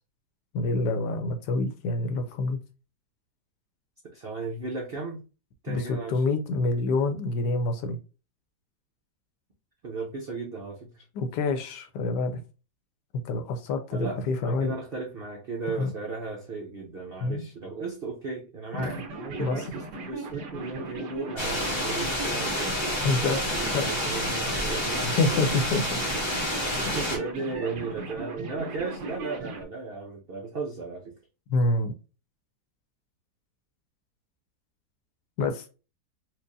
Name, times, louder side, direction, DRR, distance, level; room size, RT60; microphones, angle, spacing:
voice 1, 0.5-2.6 5.7-8.0 11.1-12.4 13.2-14.7 15.7-15.9 17.2-17.4 18.7-18.9 19.4-19.6 23.0-23.4 23.7-23.9 25.0-26.0 31.5-32.0 35.4-35.6, left 3 dB, 70° left, 1.2 m, -27 dB
voice 2, 4.0-5.2 5.6-6.4 9.8-11.0 13.9-22.8 23.2-25.1 26.7-31.2, right 3 dB, 90° right, 0.5 m, -36 dB
sound 1, 18.8-29.6, right 3 dB, 70° right, 1.3 m, -38 dB
sound 2, 21.4-27.2, left 1 dB, 20° left, 0.7 m, -29 dB
4.4 x 2.4 x 2.6 m
omnidirectional pair, 2.0 m